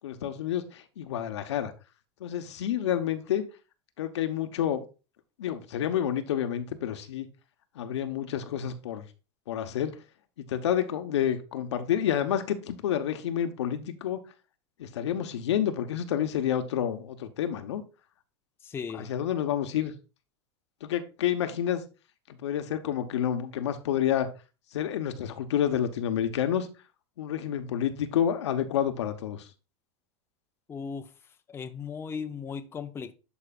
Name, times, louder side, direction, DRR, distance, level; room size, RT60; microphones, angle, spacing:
voice 1, 0.0-1.7 2.2-3.4 4.0-4.8 5.4-7.3 7.7-9.0 9.5-10.0 10.4-14.2 14.8-17.8 18.9-19.9 20.8-21.8 22.3-24.3 24.7-26.7 27.2-29.5, left 10 dB, 85° left, 1.0 m, -29 dB
voice 2, 18.6-19.1 30.7-31.1 31.5-33.1, left 6 dB, 15° left, 0.6 m, -37 dB
11.0 x 4.8 x 2.4 m
supercardioid pair, 125°, 14 cm